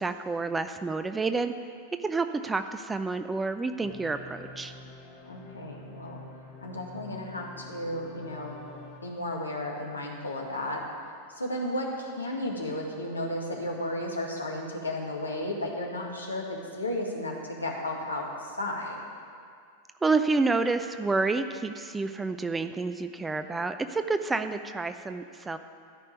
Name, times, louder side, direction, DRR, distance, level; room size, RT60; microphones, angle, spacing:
voice 1, 0.0-1.5 2.0-4.7 20.0-25.6, right 3 dB, 10° right, 9 dB, 0.5 m, -29 dB
sound 1, 3.8-9.0, left 2 dB, 45° left, 2.6 m, -47 dB
voice 2, 5.2-6.2 6.6-8.5 9.0-10.8 11.4-19.0, left 1 dB, 80° left, -1 dB, 1.9 m, -33 dB
13.5 x 5.5 x 9.1 m, 2.2 s
figure-of-eight pair, 90°, 0 cm